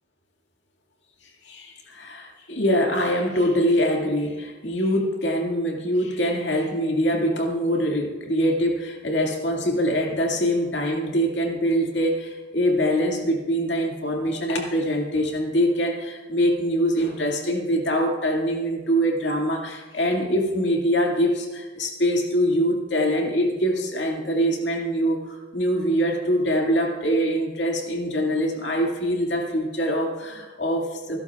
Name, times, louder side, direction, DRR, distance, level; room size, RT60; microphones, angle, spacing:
voice 1, 1.4-31.2, equal, 60° left, 1 dB, 2.2 m, -24 dB
26.0 x 11.5 x 2.4 m, 1.3 s
head